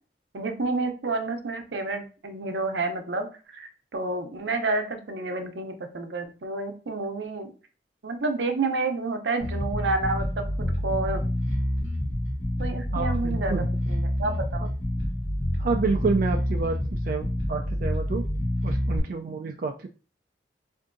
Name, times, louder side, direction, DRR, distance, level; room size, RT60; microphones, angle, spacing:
voice 1, 0.3-7.5 8.0-11.3 12.6-14.7, right 3 dB, 85° right, 5 dB, 0.6 m, -30 dB
Bass guitar, 9.4-19.0, left 1 dB, 20° left, 2.0 m, -28 dB
voice 2, 12.9-13.7 15.6-18.3 18.6-19.9, right 4 dB, 55° right, 4 dB, 0.3 m, -29 dB
4.5 x 2.6 x 2.5 m, 0.36 s
head